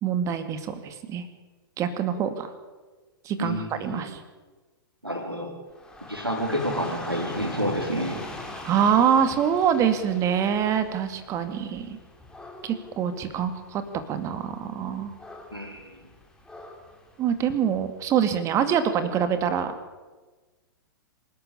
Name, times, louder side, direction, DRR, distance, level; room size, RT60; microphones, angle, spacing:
voice 1, 0.0-1.2 1.8-2.5 3.2-4.2 8.6-12.0 12.6-13.8 14.1-15.1 17.2-19.7, right 8 dB, 25° right, 10 dB, 2.3 m, -25 dB
voice 2, 3.4-4.1 5.0-5.5 6.1-8.2 15.5-15.9, equal, 90° right, -3 dB, 4.4 m, -29 dB
Dog / Rain, 5.7-17.9, left 2 dB, 5° left, 3.5 m, -42 dB
26.5 x 12.5 x 8.7 m, 1.3 s
figure-of-eight pair, 110°, 12 cm